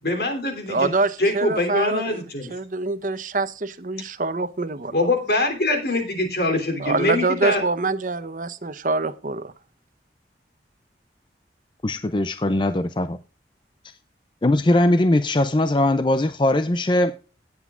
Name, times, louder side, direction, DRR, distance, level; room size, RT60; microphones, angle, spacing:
voice 1, 0.0-0.9 1.2-2.5 4.9-7.6, left 2 dB, 60° left, 3.2 m, -23 dB
voice 2, 0.7-2.2 2.5-5.0 6.8-9.5, right 3 dB, 50° right, 0.9 m, -25 dB
voice 3, 11.8-13.2 13.8-14.0 14.4-17.2, left 1 dB, 25° left, 0.5 m, -20 dB
17.5 x 8.0 x 2.5 m
head